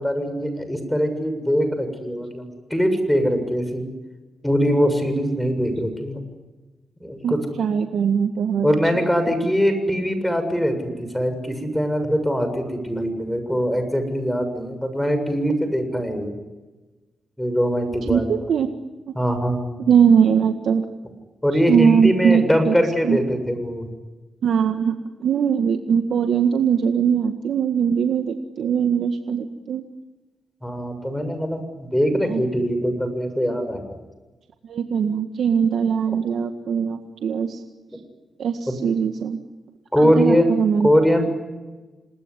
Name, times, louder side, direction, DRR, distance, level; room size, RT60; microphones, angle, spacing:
voice 1, 0.0-3.9 4.4-6.2 7.0-7.4 8.6-16.3 17.4-18.3 19.1-19.7 21.4-23.9 30.6-34.0 36.1-36.2 39.9-40.5 40.8-41.3, equal, 5° left, 9 dB, 7.3 m, -22 dB
voice 2, 7.2-8.8 18.1-18.7 19.1-19.2 19.9-20.9 21.7-22.7 23.0-23.2 24.4-29.8 32.3-32.4 34.6-37.6 38.4-39.4 40.0-40.9, right 7 dB, 75° right, 5 dB, 1.7 m, -21 dB
28.5 x 19.5 x 9.9 m, 1.2 s
cardioid pair, 60°, 0 cm